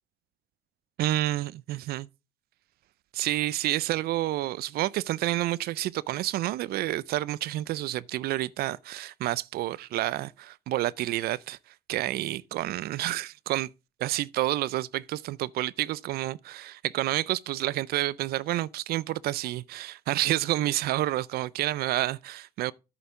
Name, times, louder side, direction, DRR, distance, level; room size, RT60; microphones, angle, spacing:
voice 1, 1.0-2.1 3.1-13.7 14.0-22.7, right 15 dB, 65° right, 0.4 m, -29 dB
8.9 x 6.9 x 3.6 m
cardioid pair, 110°, 17 cm